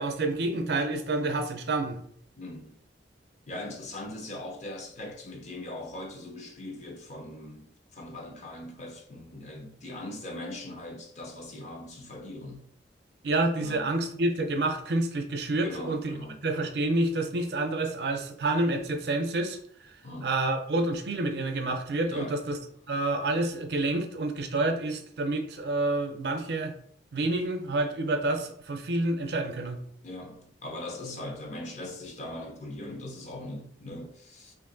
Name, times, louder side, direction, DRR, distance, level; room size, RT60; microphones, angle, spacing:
voice 1, 0.0-2.0 13.2-16.1 16.4-20.0 20.2-22.6 22.9-26.7 27.1-29.8, right 2 dB, 65° right, 0.5 m, -28 dB
voice 2, 2.4-2.8 3.5-7.7 7.9-12.6 13.6-13.9 15.6-16.4 20.0-20.3 22.1-22.3 30.0-34.5, left 1 dB, 40° left, 0.6 m, -40 dB
3.0 x 2.5 x 3.8 m
head